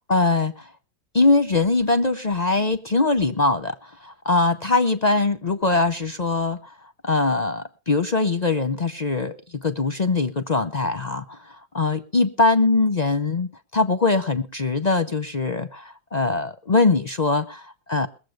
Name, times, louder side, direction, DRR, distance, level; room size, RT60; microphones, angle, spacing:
voice 1, 0.1-0.7 1.1-6.7 7.0-18.1, left 3 dB, 45° left, 11 dB, 0.5 m, -22 dB
21.0 x 7.5 x 6.4 m, 0.36 s
omnidirectional pair, 1.7 m